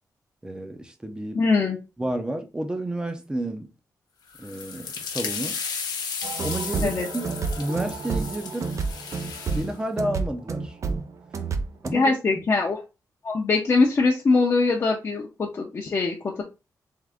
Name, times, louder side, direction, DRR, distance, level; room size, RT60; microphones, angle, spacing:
voice 1, 0.4-1.4 2.0-3.7 4.4-5.6 6.4-7.3 7.6-8.7 9.5-10.8 11.8-12.4, right 1 dB, 10° right, 0.7 m, -31 dB
voice 2, 1.3-1.8 6.8-7.1 11.9-12.8 13.2-16.4, left 3 dB, 40° left, 0.7 m, -22 dB
sound 1, 4.3-9.7, left 5 dB, 80° left, 1.0 m, -34 dB
sound 2, 6.2-11.9, right 4 dB, 50° right, 0.5 m, -30 dB
3.7 x 3.4 x 3.5 m
wide cardioid pair, 160°, 7 cm